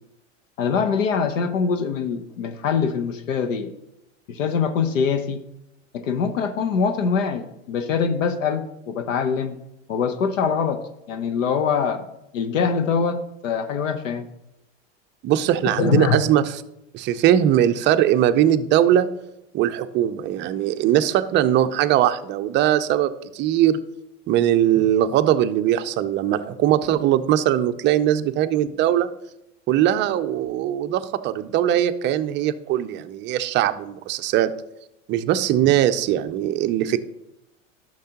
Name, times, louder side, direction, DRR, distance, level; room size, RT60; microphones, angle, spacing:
voice 1, 0.6-3.7 4.3-5.4 5.9-9.6 9.9-10.8 11.1-12.0 12.3-14.2 15.8-16.2, left 6 dB, 75° left, 9 dB, 0.9 m, -23 dB
voice 2, 15.2-16.6 16.9-19.1 19.5-23.8 24.3-29.1 29.7-34.5 35.1-37.0, right 11 dB, 30° right, 10 dB, 0.5 m, -20 dB
11.5 x 6.6 x 2.9 m, 0.87 s
hypercardioid pair, 105°, 38 cm